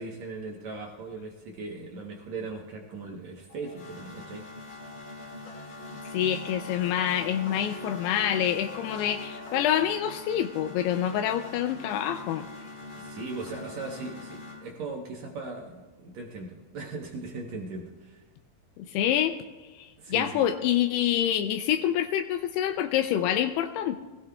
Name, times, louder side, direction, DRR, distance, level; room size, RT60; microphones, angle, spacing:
voice 1, 0.0-4.4 12.9-18.2 20.0-20.5, right 3 dB, 70° right, 0 dB, 1.7 m, -39 dB
sound 1, 3.5-14.6, left 2 dB, 55° left, 3.3 m, -42 dB
voice 2, 6.1-12.5 18.8-19.3 19.8-24.0, left 10 dB, 85° left, 8 dB, 2.6 m, -27 dB
22.0 x 16.5 x 2.3 m, 1.3 s
omnidirectional pair, 4.6 m